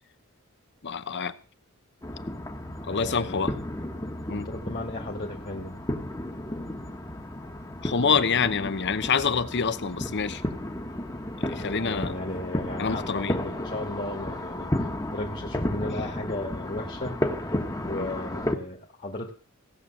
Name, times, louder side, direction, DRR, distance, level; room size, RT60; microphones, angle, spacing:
voice 1, 0.8-1.4 2.8-3.5 4.3-4.5 7.8-10.4 11.4-12.1 12.8-13.4 17.9-18.1, left 5 dB, 50° left, 0.9 m, -26 dB
sound 1, 2.0-18.5, left 1 dB, 15° left, 1.3 m, -33 dB
voice 2, 2.9-3.5 4.3-5.8 8.4-8.5 11.8-17.2 17.8-19.3, left 1 dB, 35° left, 2.0 m, -35 dB
17.0 x 6.9 x 7.9 m
head